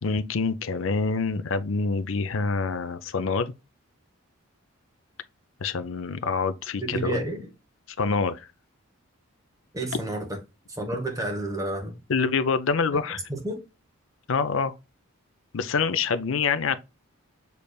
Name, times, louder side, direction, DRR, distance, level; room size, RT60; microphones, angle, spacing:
voice 1, 0.0-3.5 5.6-7.2 8.0-8.5 12.1-13.2 14.3-14.7 15.5-16.8, left 4 dB, 65° left, 0.5 m, -26 dB
voice 2, 6.8-7.4 9.7-10.2 10.7-11.9 13.3-13.6, right 2 dB, 15° right, 1.2 m, -30 dB
6.8 x 3.3 x 2.3 m
head